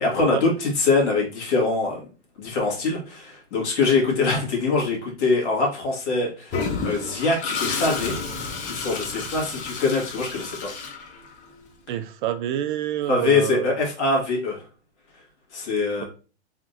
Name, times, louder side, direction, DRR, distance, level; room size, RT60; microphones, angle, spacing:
voice 1, 0.0-2.0 2.4-10.7 13.1-14.6 15.5-16.1, left 3 dB, 75° left, 2.0 m, -23 dB
Toilet flush, 6.5-11.6, left 4 dB, 25° left, 0.6 m, -31 dB
voice 2, 11.9-13.7, right 11 dB, 45° right, 0.4 m, -27 dB
3.6 x 3.5 x 2.6 m
hypercardioid pair, 140°, 35 cm